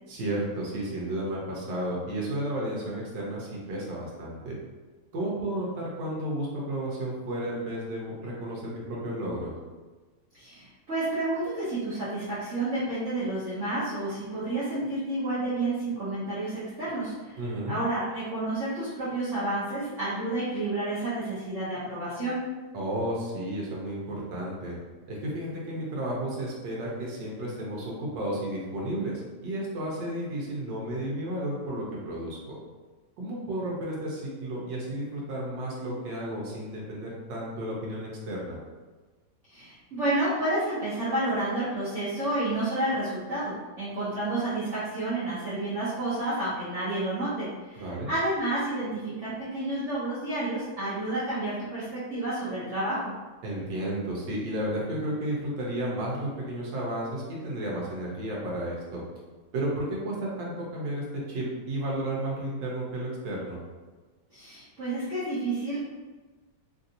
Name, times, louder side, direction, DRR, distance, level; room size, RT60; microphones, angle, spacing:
voice 1, 0.1-4.6 5.1-9.5 17.4-17.8 22.7-24.8 25.1-32.6 33.2-38.6 47.8-48.1 53.4-59.0 59.5-63.6, right 1 dB, 90° right, -4 dB, 1.4 m, -32 dB
voice 2, 10.3-22.4 39.5-53.1 64.3-65.8, right 2 dB, 55° right, -11 dB, 1.0 m, -30 dB
3.4 x 2.5 x 2.7 m, 1.3 s
omnidirectional pair, 1.8 m